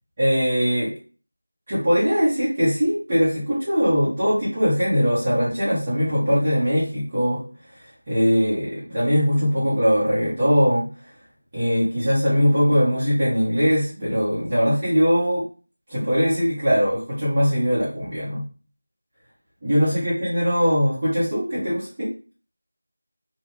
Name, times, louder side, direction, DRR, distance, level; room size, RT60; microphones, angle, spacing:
voice 1, 0.2-0.9 1.7-7.4 8.1-10.9 11.5-15.4 15.9-18.4 19.6-22.1, equal, 25° right, -10 dB, 1.1 m, -21 dB
3.4 x 2.5 x 3.4 m, 0.37 s
figure-of-eight pair, 170°, 0 cm